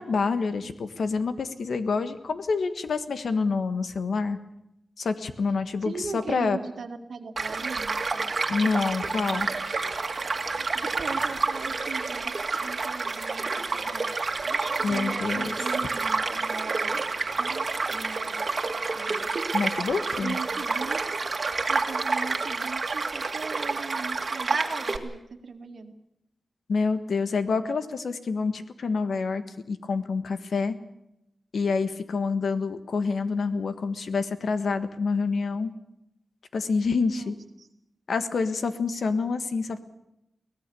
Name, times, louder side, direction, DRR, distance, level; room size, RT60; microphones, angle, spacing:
voice 1, 0.0-4.4 5.0-6.6 8.5-9.5 14.8-15.6 19.5-20.4 26.7-30.8 31.5-35.7 36.5-37.3 38.1-39.8, left 4 dB, 80° left, 10 dB, 1.5 m, -27 dB
voice 2, 5.8-8.3 10.7-14.0 14.8-17.0 17.4-17.7 17.9-18.4 18.9-19.3 20.2-21.0 21.7-25.9 37.1-37.3 37.6-37.7, right 5 dB, 75° right, 6 dB, 1.9 m, -39 dB
Child speech kid speaking / Stream / Car passing by, 7.4-25.0, right 4 dB, 50° right, 2.0 m, -29 dB
23.5 x 18.0 x 7.0 m, 0.85 s
wide cardioid pair, 105°, 0 cm